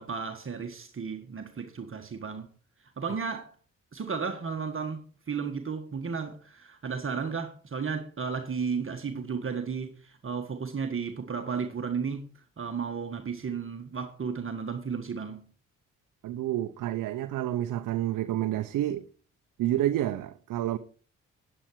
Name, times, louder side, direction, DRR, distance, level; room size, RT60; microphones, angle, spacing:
voice 1, 0.0-2.5 3.0-3.6 3.9-12.3 12.6-15.4, right 5 dB, 40° right, 1.6 m, -34 dB
voice 2, 16.2-19.1 19.6-20.8, right 13 dB, 75° right, 0.8 m, -29 dB
10.0 x 10.0 x 4.7 m
supercardioid pair, 55°, 32 cm